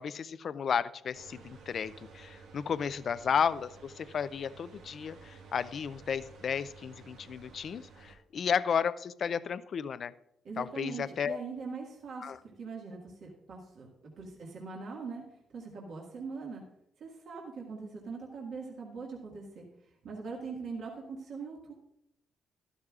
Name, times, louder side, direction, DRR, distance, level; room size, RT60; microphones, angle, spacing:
voice 1, 0.0-10.1 10.6-11.4 12.2-12.4, left 7 dB, 55° left, 16 dB, 0.4 m, -33 dB
sound 1, 1.1-8.1, right 4 dB, 90° right, 1.5 m, -53 dB
voice 2, 10.4-13.9 14.2-15.2 15.5-16.6 17.0-19.7 20.0-21.7, right 4 dB, 65° right, -2 dB, 1.8 m, -42 dB
12.5 x 12.0 x 2.4 m, 0.78 s
cardioid pair, 90°, 0 cm